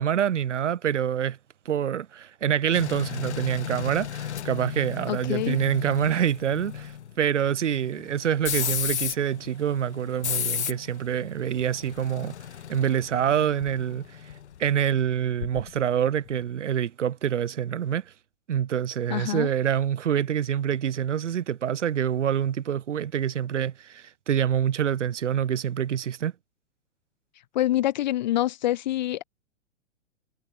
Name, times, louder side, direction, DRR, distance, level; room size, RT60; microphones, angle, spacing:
voice 1, 0.0-1.4 1.7-12.3 12.7-14.1 14.6-18.0 18.5-26.3, right 9 dB, 70° right, 0.7 m, -26 dB
sound 1, 2.7-15.9 16.3-16.5, left 9 dB, 65° left, 1.8 m, -34 dB
voice 2, 5.1-5.6 19.1-19.5 27.5-29.2, left 14 dB, 40° left, 0.4 m, -26 dB
figure-of-eight pair, 105°, 37 cm